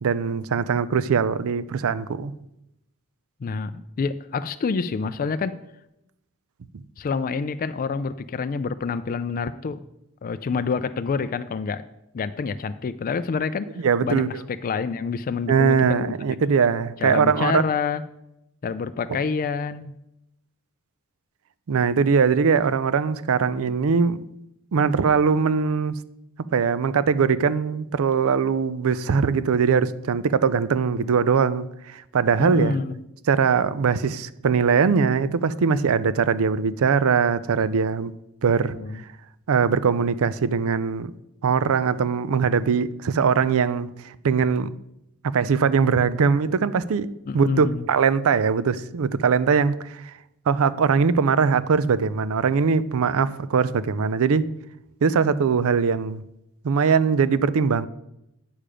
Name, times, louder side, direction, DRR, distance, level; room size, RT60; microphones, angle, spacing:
voice 1, 0.0-2.3 13.8-14.3 15.5-17.6 21.7-24.2 24.7-26.0 26.5-32.8 33.3-38.1 38.4-38.8 39.5-41.1 41.4-44.7 45.3-47.1 47.3-50.1 50.5-54.5 55.0-56.2 56.6-57.9, right 6 dB, 65° right, 0.4 m, -21 dB
voice 2, 3.4-5.6 7.0-9.8 10.2-11.8 12.1-16.1 17.0-18.0 18.6-19.9 32.4-33.0 38.5-39.0 47.3-47.9, left 5 dB, 40° left, 0.3 m, -27 dB
8.9 x 6.7 x 5.0 m
head